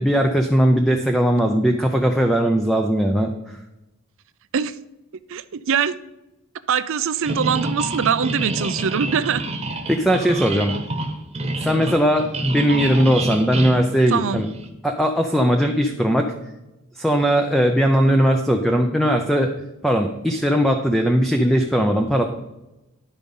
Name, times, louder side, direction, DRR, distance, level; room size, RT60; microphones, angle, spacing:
voice 1, 0.0-3.6 9.9-10.7 11.6-14.5 14.8-16.3 17.0-19.5 19.8-22.3, equal, ahead, 3 dB, 0.5 m, -19 dB
voice 2, 5.3-6.0 6.7-9.4 14.1-14.4, right 7 dB, 65° right, 14 dB, 0.5 m, -22 dB
sound 1, 7.2-14.7, right 2 dB, 30° right, 1.1 m, -28 dB
11.0 x 5.1 x 5.4 m, 0.96 s
head